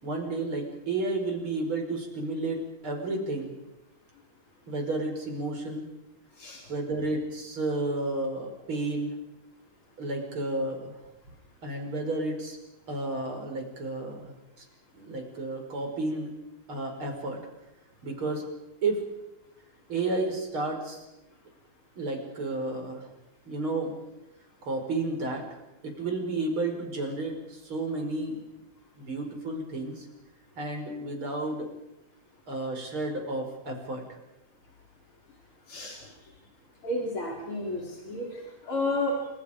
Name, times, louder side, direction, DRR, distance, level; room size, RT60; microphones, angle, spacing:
voice 1, 0.0-3.5 4.7-5.9 6.7-9.1 10.0-11.0 11.6-12.6 12.9-14.7 14.9-16.4 16.7-17.4 18.0-18.5 18.8-19.0 19.9-21.1 22.0-23.1 23.5-24.0 24.6-28.4 29.0-30.1 30.6-31.7 32.5-34.2, right 2 dB, 75° right, 3 dB, 6.0 m, -32 dB
voice 2, 36.8-38.3 38.7-39.1, left 2 dB, 75° left, -2 dB, 6.1 m, -31 dB
29.0 x 27.0 x 5.2 m, 0.96 s
omnidirectional pair, 2.3 m